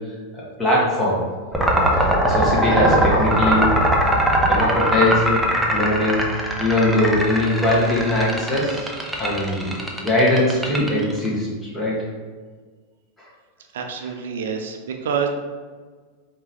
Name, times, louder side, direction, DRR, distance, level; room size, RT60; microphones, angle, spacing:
voice 1, 0.3-1.2 1.9-3.7 4.4-5.4 5.7-6.2 6.6-8.9 9.2-12.0, left 1 dB, 15° left, -5 dB, 1.5 m, -21 dB
sound 1, 1.5-11.3, right 1 dB, 5° right, 0.7 m, -20 dB
voice 2, 13.7-15.3, right 7 dB, 85° right, 4 dB, 0.5 m, -27 dB
4.6 x 2.9 x 3.5 m, 1.5 s
supercardioid pair, 125°, 0 cm